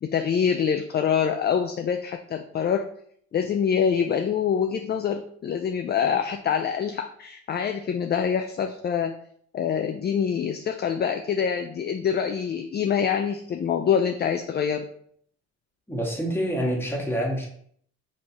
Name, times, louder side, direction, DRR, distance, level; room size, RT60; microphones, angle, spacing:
voice 1, 0.0-2.9 3.3-9.1 9.5-14.9, left 7 dB, 35° left, 6 dB, 0.4 m, -25 dB
voice 2, 15.9-17.5, equal, 5° left, -2 dB, 1.5 m, -27 dB
5.3 x 3.4 x 2.9 m, 0.64 s
cardioid pair, 90°, 30 cm